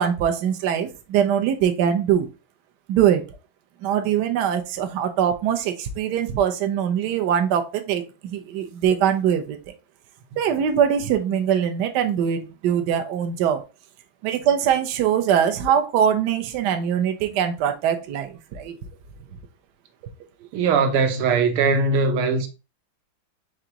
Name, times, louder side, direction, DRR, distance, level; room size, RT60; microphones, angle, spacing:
voice 1, 0.0-2.3 2.9-3.2 3.8-9.6 10.4-13.6 14.2-18.8, right 9 dB, 70° right, 1.0 m, -22 dB
voice 2, 20.5-22.5, right 4 dB, 85° right, 1.6 m, -20 dB
5.0 x 3.4 x 2.8 m
omnidirectional pair, 2.4 m